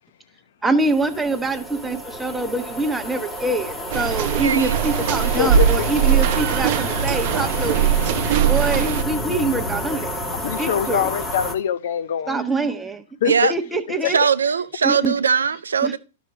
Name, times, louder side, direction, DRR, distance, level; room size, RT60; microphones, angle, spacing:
voice 1, 0.6-7.8 8.5-10.2 10.6-11.1 12.3-14.2 14.8-15.1 15.8-16.0, right 2 dB, 10° right, 1.0 m, -25 dB
sound 1, 0.8-11.5, equal, 10° left, 1.4 m, -29 dB
sound 2, 3.9-9.0, right 8 dB, 50° right, 0.8 m, -20 dB
voice 2, 4.4-4.8 13.2-13.5 14.0-16.0, right 6 dB, 80° right, 0.4 m, -20 dB
voice 3, 5.2-5.9 9.1-9.2 10.3-12.4 13.2-13.5 14.0-14.1, left 9 dB, 65° left, 0.6 m, -24 dB
11.5 x 6.1 x 3.2 m
figure-of-eight pair, 105°, 0 cm